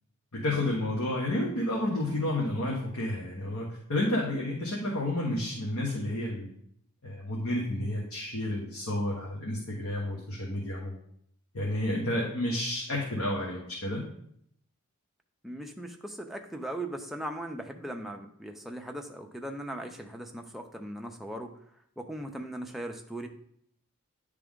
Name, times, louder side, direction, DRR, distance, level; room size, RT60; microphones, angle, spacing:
voice 1, 0.3-6.5 7.0-10.9 11.5-14.0, left 1 dB, 75° left, -4 dB, 1.3 m, -31 dB
voice 2, 15.4-21.5 22.0-23.3, right 1 dB, ahead, 3 dB, 0.5 m, -39 dB
10.0 x 3.4 x 3.6 m, 0.68 s
head